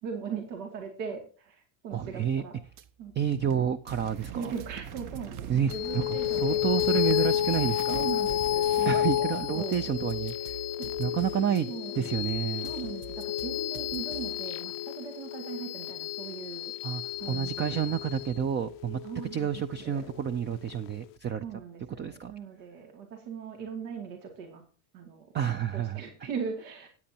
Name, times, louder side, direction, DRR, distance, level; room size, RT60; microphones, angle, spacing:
voice 1, 0.0-2.5 3.0-3.1 4.3-7.0 7.9-9.0 9.5-9.9 10.7-10.9 11.6-11.9 12.6-16.7 17.2-17.8 19.0-20.1 21.4-24.6 24.9-25.3 25.7-26.9, right 6 dB, 90° right, 3 dB, 2.6 m, -39 dB
voice 2, 1.9-2.4 3.2-4.5 5.5-8.1 8.8-10.6 11.0-11.7 12.0-12.7 16.8-17.0 17.3-19.0 19.3-21.4 22.0-22.3 25.3-26.0, right 9 dB, 25° right, 11 dB, 0.4 m, -29 dB
sound 1, 2.8-2.9 3.3-5.8 6.2-8.7 9.2-11.6 12.1-14.5, right 9 dB, 65° right, 1.1 m, -46 dB
sound 2, 3.9-9.2, right 8 dB, 40° right, 0.8 m, -43 dB
sound 3, 5.7-20.4, left 13 dB, 45° left, 0.4 m, -31 dB
14.0 x 9.3 x 2.8 m, 0.41 s
supercardioid pair, 125°, 48 cm